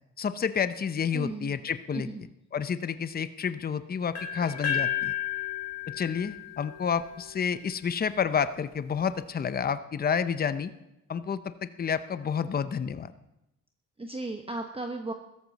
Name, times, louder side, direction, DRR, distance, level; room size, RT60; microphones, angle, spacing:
voice 1, 0.2-2.1 2.5-5.1 5.9-10.7 11.1-13.1, left 7 dB, 30° left, 12 dB, 0.7 m, -30 dB
voice 2, 1.1-1.5 1.9-2.2 14.0-15.1, right 2 dB, 20° right, 4 dB, 1.2 m, -35 dB
sound 1, 4.1-8.0, left 8 dB, 60° left, 1.8 m, -33 dB
16.0 x 14.0 x 4.1 m, 0.89 s
cardioid pair, 90°, 30 cm